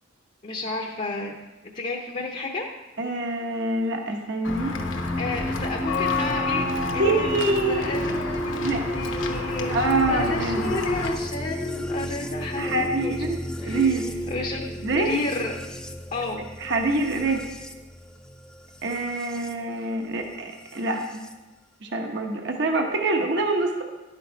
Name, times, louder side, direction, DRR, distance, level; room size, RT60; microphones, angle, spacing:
voice 1, 0.4-1.4 1.6-2.7 5.1-6.7 6.9-7.3 7.7-8.7 8.9-13.2 13.6-13.9 14.3-14.7 14.9-15.5 16.1-16.4, left 3 dB, 35° left, 1 dB, 0.7 m, -31 dB
voice 2, 3.0-4.7 7.0-8.0 8.6-8.8 9.7-10.7 12.6-14.1 14.8-15.1 16.6-17.4 18.8-21.2 21.8-23.8, right 2 dB, 55° right, 3 dB, 1.0 m, -25 dB
Walk footsteps / Bell, 4.4-11.1, left 3 dB, 65° left, 1.0 m, -30 dB
sound 1, 4.5-19.5 20.7-21.3, equal, 5° left, 0.4 m, -32 dB
11.0 x 7.0 x 4.6 m, 1.1 s
head